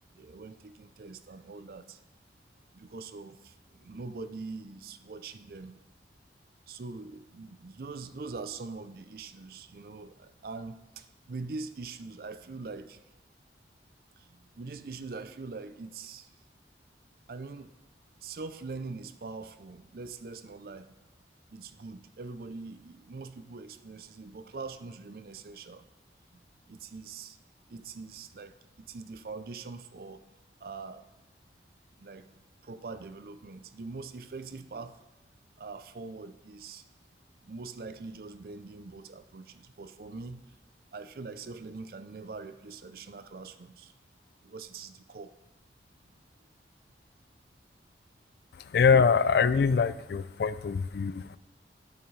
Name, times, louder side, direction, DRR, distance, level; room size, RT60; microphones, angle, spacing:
voice 1, 0.2-2.0 2.8-3.4 3.8-5.8 6.7-13.0 14.6-16.3 17.3-17.7 18.2-20.9 21.5-25.8 26.7-27.4 27.7-28.5 28.9-30.2 30.6-31.0 32.0-32.2 32.7-34.9 35.6-36.8 37.5-40.4 40.9-43.9 44.4-45.3, right 4 dB, 55° right, 11 dB, 0.5 m, -42 dB
voice 2, 48.6-51.4, left 5 dB, 65° left, 15 dB, 0.3 m, -24 dB
9.5 x 8.8 x 3.2 m, 1.1 s
head